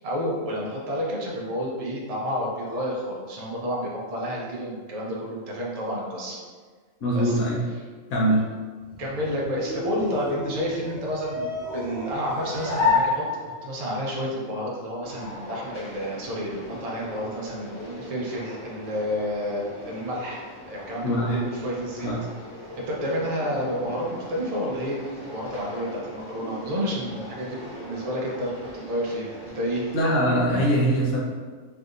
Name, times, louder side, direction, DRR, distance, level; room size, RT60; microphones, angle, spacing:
voice 1, 0.0-6.4 7.1-7.4 9.0-13.2 13.6-20.4 20.7-22.1 22.8-29.3 29.5-29.8, equal, 75° right, -3 dB, 0.3 m, -30 dB
voice 2, 7.0-7.6 8.1-8.4 21.0-21.4 22.0-22.2 29.9-31.3, equal, 85° left, -4 dB, 1.2 m, -22 dB
sound 1, 8.8-13.8, left 3 dB, 60° left, 1.2 m, -29 dB
sound 2, 15.0-30.0, left 1 dB, 40° left, 1.7 m, -41 dB
3.4 x 2.7 x 2.4 m, 1.5 s
omnidirectional pair, 1.4 m